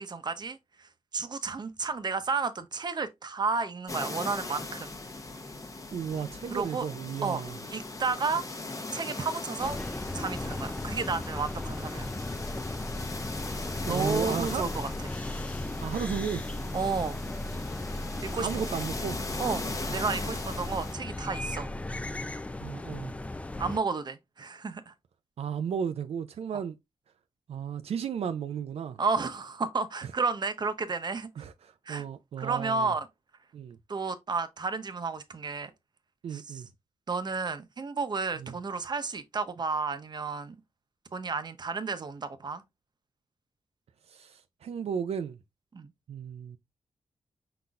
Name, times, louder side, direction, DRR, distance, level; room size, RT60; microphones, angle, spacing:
voice 1, 0.0-4.9 6.5-6.8 7.2-7.4 7.7-8.4 8.9-9.8 10.1-12.1 13.9-14.9 16.7-17.2 18.3-18.5 19.4-19.6 19.9-21.7 23.6-24.9 26.5-26.6 29.0-31.3 31.9-32.0 32.4-33.1 33.9-35.7 36.3-36.6 37.1-40.6 41.1-42.6 45.7-45.9, right 4 dB, 45° right, 0.8 m, -32 dB
sound 1, 3.9-20.9, left 2 dB, 30° left, 0.9 m, -39 dB
voice 2, 5.9-7.6 13.9-14.6 15.8-16.4 18.4-19.2 22.6-23.1 25.4-26.8 27.5-29.0 31.4-32.9 33.5-33.8 36.2-36.7 38.4-38.5 44.1-45.4 46.1-46.6, right 7 dB, 80° right, 0.4 m, -34 dB
sound 2, 9.6-23.8, left 2 dB, 15° left, 0.4 m, -36 dB
5.5 x 3.9 x 2.4 m
wide cardioid pair, 105°, 10 cm